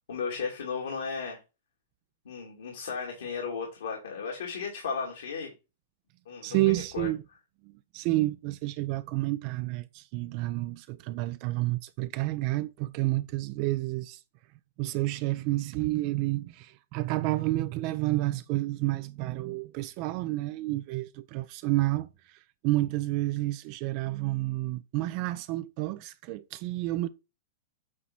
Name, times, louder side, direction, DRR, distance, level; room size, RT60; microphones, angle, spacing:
voice 1, 0.1-1.4 2.2-5.5 6.3-7.1, left 5 dB, 70° left, 2.4 m, -35 dB
voice 2, 6.4-7.2 7.9-14.2 14.8-27.1, right 18 dB, 45° right, 0.5 m, -30 dB
8.6 x 4.2 x 4.2 m
hypercardioid pair, 105°, 0 cm